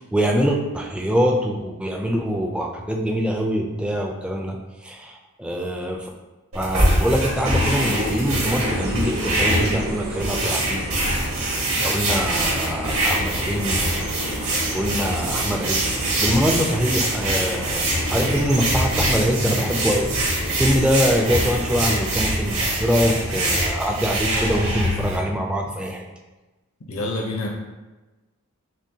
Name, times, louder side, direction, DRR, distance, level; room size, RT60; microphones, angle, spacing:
voice 1, 0.0-6.1 6.5-10.9 11.8-13.8 14.4-15.9 16.2-17.8 18.1-20.1 20.5-26.0, equal, 5° right, 1 dB, 0.3 m, -24 dB
sound 1, 6.5-25.2, right 1 dB, 70° right, 1.4 m, -24 dB
sound 2, 7.3-22.4, right 1 dB, 45° right, 0.7 m, -35 dB
sound 3, 8.3-23.4, right 1 dB, 90° right, 0.6 m, -35 dB
voice 2, 26.9-27.5, left 2 dB, 75° left, -2 dB, 0.6 m, -27 dB
6.1 x 2.2 x 2.7 m, 1.1 s
head